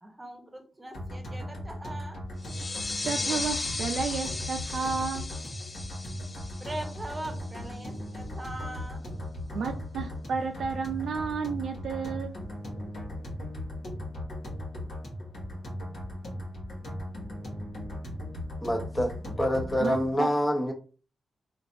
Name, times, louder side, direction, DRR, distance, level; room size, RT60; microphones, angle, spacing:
voice 1, 0.0-2.2 6.6-9.0, right 1 dB, 20° right, 0.9 m, -41 dB
sound 1, 0.9-20.1, left 1 dB, 70° left, 1.3 m, -38 dB
sound 2, 2.4-7.7, left 3 dB, 40° left, 0.4 m, -36 dB
voice 2, 3.0-5.3 9.5-12.4 19.8-20.3, right 5 dB, 75° right, 0.5 m, -32 dB
voice 3, 18.6-19.1 19.4-20.7, equal, 25° left, 0.9 m, -26 dB
3.2 x 2.5 x 2.6 m
cardioid pair, 60°, 0 cm